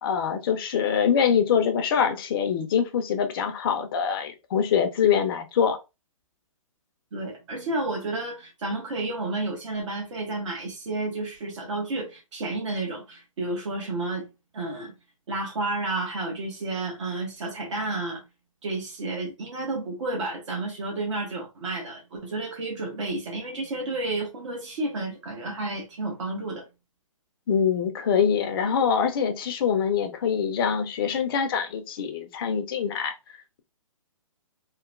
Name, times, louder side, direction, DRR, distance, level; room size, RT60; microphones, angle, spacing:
voice 1, 0.0-5.8 27.5-33.1, left 7 dB, 40° left, 0.5 m, -24 dB
voice 2, 7.1-14.3 14.5-14.9 15.3-18.2 18.6-26.7, right 2 dB, 60° right, 0.9 m, -31 dB
2.9 x 2.0 x 2.4 m
figure-of-eight pair, 130°, 18 cm